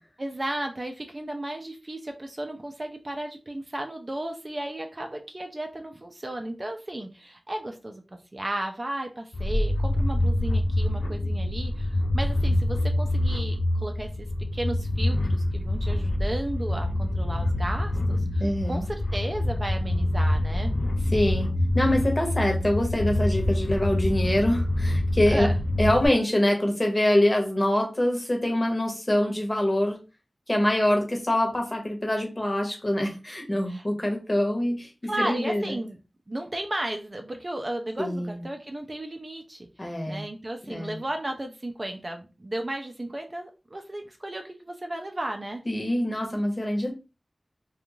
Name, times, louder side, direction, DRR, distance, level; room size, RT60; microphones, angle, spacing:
voice 1, 0.2-8.0 8.3-14.3 14.5-20.7 25.3-25.6 33.7-33.8 35.0-36.0 36.3-39.7 40.1-45.6, right 1 dB, 35° right, 4 dB, 0.4 m, -34 dB
sound 1, 9.3-26.1, left 1 dB, 65° left, 0.3 m, -26 dB
voice 2, 18.4-18.8 21.1-21.5 21.7-25.5 25.8-30.0 30.5-34.9 35.2-35.8 38.0-38.4 39.8-40.2 40.7-41.0 45.7-46.9, left 1 dB, 25° left, 2 dB, 0.9 m, -25 dB
2.5 x 2.3 x 3.0 m, 0.29 s
wide cardioid pair, 80°, 0 cm